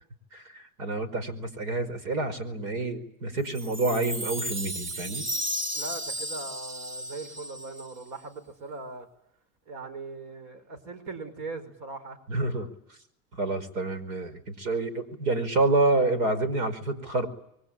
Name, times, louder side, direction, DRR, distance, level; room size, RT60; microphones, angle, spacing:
voice 1, 0.3-5.3 12.3-12.7 13.4-17.3, right 2 dB, 75° right, 14 dB, 5.0 m, -28 dB
Chime, 3.6-8.0, equal, 25° right, 1.9 m, -34 dB
voice 2, 5.7-9.1 9.7-12.2, right 3 dB, 60° right, 10 dB, 5.2 m, -40 dB
26.0 x 23.0 x 9.0 m, 0.75 s
hypercardioid pair, 95°, 44 cm